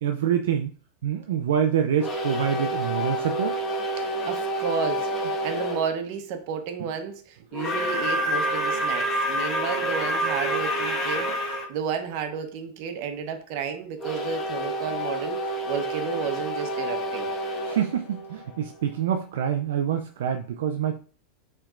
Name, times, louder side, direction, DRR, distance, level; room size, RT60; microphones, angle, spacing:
voice 1, 0.0-0.7 1.0-3.6 6.8-6.9 17.7-21.0, right 9 dB, 85° right, 4 dB, 0.4 m, -26 dB
sound 1, 2.0-5.8 7.5-11.7 14.0-18.8, equal, 25° left, 1.1 m, -28 dB
voice 2, 4.0-17.3, right 6 dB, 60° right, 6 dB, 1.0 m, -32 dB
5.7 x 3.4 x 2.5 m, 0.41 s
supercardioid pair, 120°, 0 cm